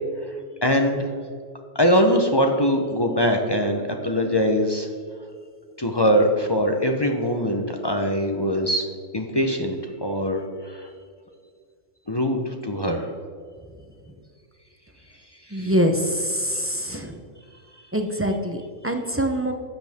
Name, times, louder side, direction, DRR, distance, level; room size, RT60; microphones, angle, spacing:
voice 1, 0.6-1.1 1.7-4.9 5.8-8.9 9.1-10.9 12.1-13.1 15.5-15.7, equal, 25° left, 3 dB, 0.6 m, -22 dB
voice 2, 15.5-17.2 17.9-19.5, equal, 20° right, 4 dB, 0.3 m, -24 dB
12.0 x 8.0 x 3.6 m, 2.1 s
omnidirectional pair, 1.4 m